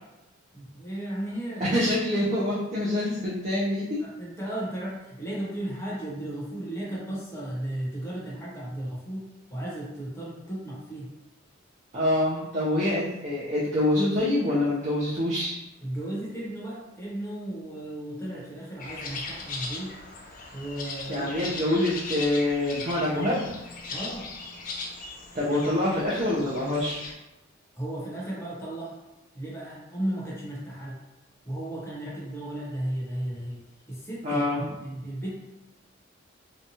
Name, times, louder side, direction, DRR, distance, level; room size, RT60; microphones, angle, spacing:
voice 1, 0.5-1.9 4.0-11.1 15.8-20.0 20.5-21.4 23.9-24.3 27.7-29.0 29.3-31.0 31.4-33.6 33.9-35.4, right 1 dB, 15° left, -6 dB, 0.8 m, -35 dB
voice 2, 1.6-4.1 11.9-15.6 21.1-23.5 25.3-27.0 34.2-34.7, left 1 dB, 40° right, -7 dB, 0.5 m, -26 dB
sound 1, 18.8-27.1, left 3 dB, 45° left, 0.4 m, -38 dB
2.8 x 2.3 x 2.7 m, 0.99 s
head